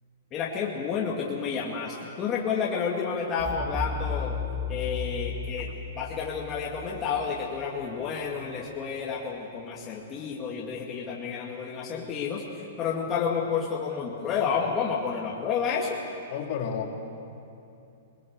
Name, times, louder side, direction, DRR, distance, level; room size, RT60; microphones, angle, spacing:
voice 1, 0.3-4.4 4.7-5.7 6.0-16.0, left 6 dB, 25° left, -3 dB, 2.1 m, -30 dB
sound 1, 3.4-8.3, left 4 dB, 5° right, 1.0 m, -34 dB
voice 2, 16.3-16.9, left 7 dB, 50° left, 2 dB, 2.8 m, -31 dB
20.5 x 20.0 x 8.1 m, 2.7 s
hypercardioid pair, 150°, 0 cm